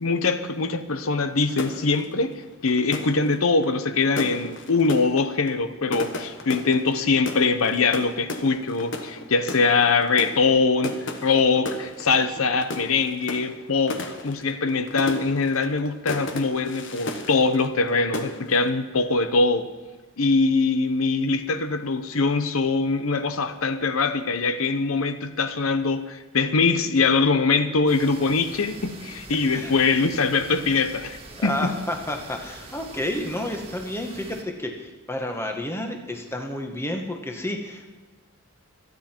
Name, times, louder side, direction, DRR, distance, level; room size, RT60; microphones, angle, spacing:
voice 1, 0.0-19.7 20.2-31.8, left 4 dB, 80° left, 10 dB, 0.8 m, -23 dB
sound 1, 1.5-17.9 18.1-18.7, left 2 dB, 60° left, 1.4 m, -35 dB
sound 2, 27.9-34.4, right 2 dB, 30° right, 1.9 m, -44 dB
voice 2, 31.4-38.0, left 1 dB, 10° left, 3 dB, 1.4 m, -31 dB
26.0 x 9.7 x 4.5 m, 1.2 s
head